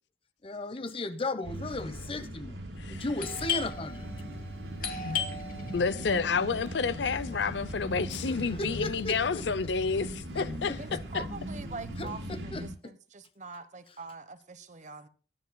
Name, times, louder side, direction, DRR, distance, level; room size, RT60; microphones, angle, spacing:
voice 1, 0.4-2.6 2.9-4.1 5.6-5.7 8.1-9.5 10.4-11.0 12.0-12.9, left 2 dB, 30° left, 1.1 m, -36 dB
sound 1, 1.4-12.7, equal, 85° right, 5.4 m, -39 dB
Doorbell, 3.2-8.6, left 7 dB, 50° left, 2.4 m, -38 dB
voice 2, 5.7-11.2, left 5 dB, 75° left, 0.6 m, -30 dB
voice 3, 10.8-15.1, right 4 dB, 45° right, 1.1 m, -44 dB
23.0 x 10.0 x 2.3 m
head